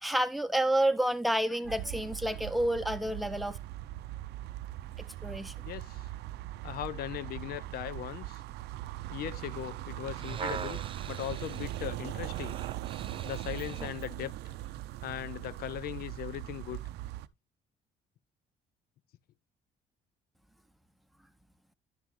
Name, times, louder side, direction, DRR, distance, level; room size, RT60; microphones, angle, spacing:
voice 1, 0.0-3.6 5.2-5.5, right 1 dB, ahead, 0.8 m, -29 dB
sound 1, 1.6-17.3, right 15 dB, 80° right, 0.6 m, -40 dB
voice 2, 5.6-6.1 6.6-8.4 9.1-10.8 11.1-12.6 13.3-14.3 15.0-16.8, left 12 dB, 65° left, 0.5 m, -39 dB
sound 2, 10.2-14.0 14.7-14.8, right 7 dB, 30° right, 0.6 m, -42 dB
11.5 x 6.2 x 3.1 m
cardioid pair, 110°, 17 cm